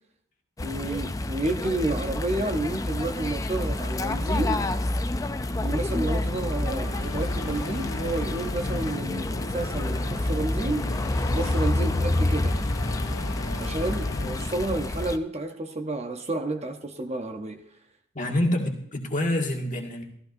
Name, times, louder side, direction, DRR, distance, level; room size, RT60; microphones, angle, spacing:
sound 1, 0.6-15.2, left 1 dB, 15° left, 0.4 m, -28 dB
voice 1, 0.6-4.6 5.5-10.8 11.3-12.6 13.6-17.6, right 2 dB, 30° right, 5 dB, 0.7 m, -30 dB
sound 2, 6.2-14.5, left 2 dB, 85° left, 1.5 m, -37 dB
voice 2, 18.1-20.0, left 1 dB, 35° left, 1 dB, 1.8 m, -26 dB
14.5 x 14.0 x 2.6 m, 0.69 s
head